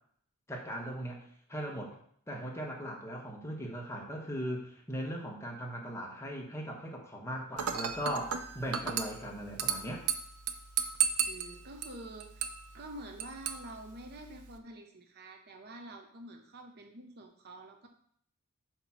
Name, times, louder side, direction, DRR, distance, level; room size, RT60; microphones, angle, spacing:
voice 1, 0.5-2.0 2.3-10.0, equal, 10° left, -1 dB, 1.1 m, -39 dB
Dishes pots and pans / Glass, 7.6-14.6, right 7 dB, 85° right, 0.6 m, -36 dB
voice 2, 11.3-12.5 12.7-17.9, right 1 dB, 50° right, 4 dB, 0.8 m, -47 dB
7.9 x 3.0 x 5.9 m, 0.62 s
head